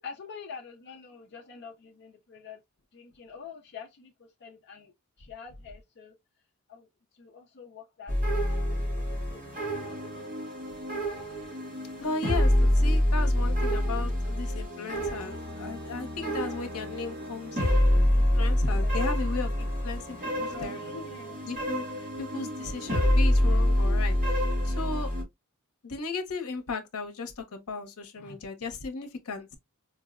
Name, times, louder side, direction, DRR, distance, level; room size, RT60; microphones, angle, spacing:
voice 1, 0.0-2.6 2.9-4.1 4.4-4.9 5.2-6.2 6.7-6.9 7.1-8.2 8.6-10.2 18.7-19.0 20.3-21.4 28.2-28.4, left 5 dB, 50° left, 0.5 m, -46 dB
sound 1, 8.1-25.2, equal, 35° right, 1.1 m, -27 dB
voice 2, 12.0-17.8 18.1-20.8 21.4-21.8 22.2-25.1 25.8-29.6, left 4 dB, 80° left, 0.7 m, -36 dB
4.6 x 2.0 x 2.3 m
head